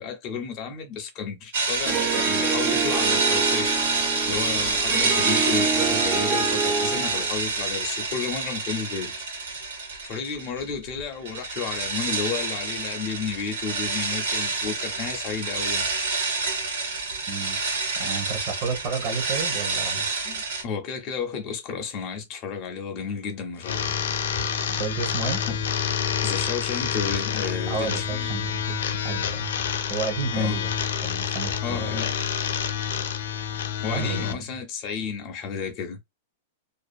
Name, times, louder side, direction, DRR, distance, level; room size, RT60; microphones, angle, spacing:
voice 1, 0.0-9.1 10.0-15.9 16.6-16.7 20.2-23.9 25.5-25.6 26.2-28.3 30.3-30.6 31.6-32.2 33.8-36.0, left 6 dB, 30° left, 0.6 m, -32 dB
sound 1, 1.5-10.6 10.9-20.6, right 4 dB, 75° right, 1.3 m, -27 dB
Harp, 1.9-7.3, right 5 dB, 15° right, 0.3 m, -28 dB
voice 2, 17.3-17.6 17.9-20.1 24.8-25.4 27.7-29.5 29.9-30.7 31.0-32.0 33.9-34.5, right 5 dB, 30° right, 0.9 m, -32 dB
sound 2, 23.6-34.3, left 8 dB, 85° left, 0.5 m, -28 dB
2.6 x 2.3 x 2.3 m
supercardioid pair, 175°, 0 cm